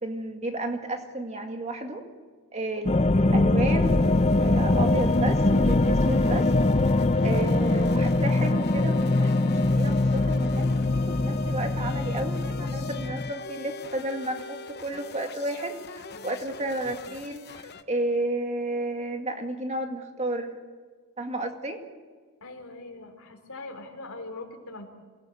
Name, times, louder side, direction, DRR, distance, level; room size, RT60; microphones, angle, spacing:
voice 1, 0.0-2.0 2.5-6.5 7.2-20.6 21.2-21.8, right 1 dB, 30° right, 4 dB, 2.1 m, -32 dB
sound 1, 2.9-13.3, left 2 dB, 30° left, 0.6 m, -22 dB
sound 2, 3.7-17.8, left 4 dB, 50° left, 1.0 m, -43 dB
voice 2, 22.4-24.9, left 2 dB, 70° left, 4 dB, 4.0 m, -41 dB
27.0 x 18.0 x 8.1 m, 1.5 s
head